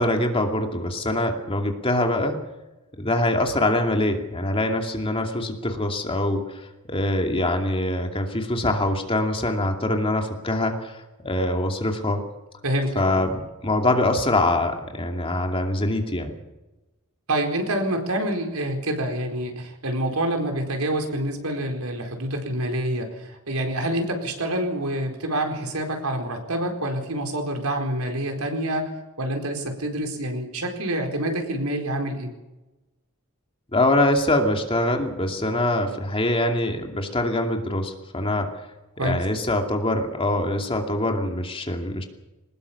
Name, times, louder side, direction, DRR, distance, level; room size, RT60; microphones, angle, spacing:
voice 1, 0.0-2.4 3.0-12.2 13.0-16.3 33.7-38.5 39.0-42.1, left 1 dB, 25° left, 3 dB, 2.6 m, -24 dB
voice 2, 12.6-13.3 17.3-28.9 29.2-32.3 39.0-39.2, right 1 dB, 80° right, 4 dB, 4.3 m, -27 dB
22.5 x 19.5 x 7.1 m, 1.1 s
head